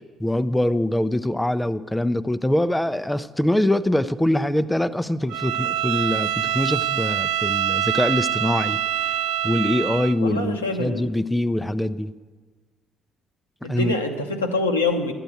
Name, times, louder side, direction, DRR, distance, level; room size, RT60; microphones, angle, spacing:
voice 1, 0.2-9.2 9.4-12.1 13.7-13.9, left 1 dB, 5° left, 12 dB, 0.5 m, -23 dB
Bowed string instrument, 5.3-10.2, right 11 dB, 65° right, 0.3 m, -25 dB
voice 2, 10.2-11.1 13.6-15.1, left 3 dB, 85° left, 3 dB, 0.9 m, -25 dB
12.5 x 9.0 x 9.1 m, 1.4 s
figure-of-eight pair, 45°, 0 cm